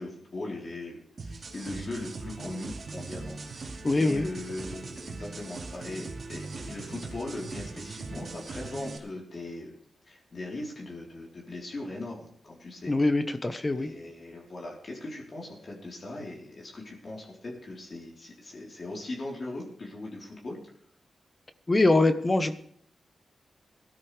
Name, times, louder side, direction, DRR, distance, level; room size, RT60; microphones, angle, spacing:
voice 1, 0.0-9.8 10.1-12.9 13.7-20.6, left 2 dB, 50° left, -3 dB, 3.9 m, -39 dB
sound 1, 1.2-9.0, right 3 dB, 60° right, 2.5 m, -40 dB
voice 2, 3.8-4.3 12.9-13.9 21.7-22.5, left 2 dB, 30° left, 9 dB, 1.1 m, -23 dB
17.5 x 12.5 x 3.4 m, 0.63 s
cardioid pair, 65°, 0 cm